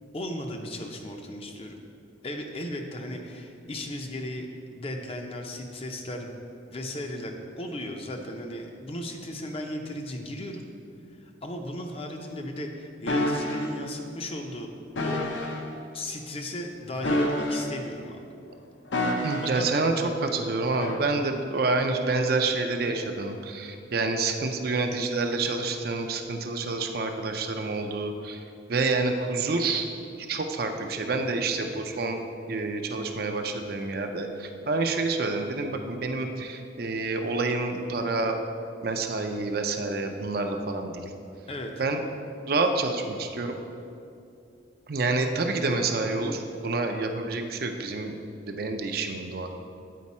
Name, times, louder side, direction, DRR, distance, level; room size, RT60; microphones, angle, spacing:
voice 1, 0.1-1.8 2.2-4.5 4.7-6.4 6.7-10.6 11.2-14.7 15.0-15.2 15.9-18.3 19.4-19.8 24.6-24.8 41.5-41.7, left 1 dB, 30° left, 3 dB, 0.5 m, -36 dB
sound 1, 13.1-13.7 15.0-15.6 17.0-17.9 18.9-19.7 20.8-21.0, left 1 dB, 80° left, 0.7 m, -28 dB
voice 2, 19.2-19.9 20.3-28.4 28.7-29.9 30.3-32.2 32.5-38.4 38.8-41.0 41.8-42.0 42.5-43.6 44.9-49.5, right 3 dB, 55° right, 5 dB, 0.5 m, -28 dB
8.4 x 4.4 x 4.2 m, 2.5 s
head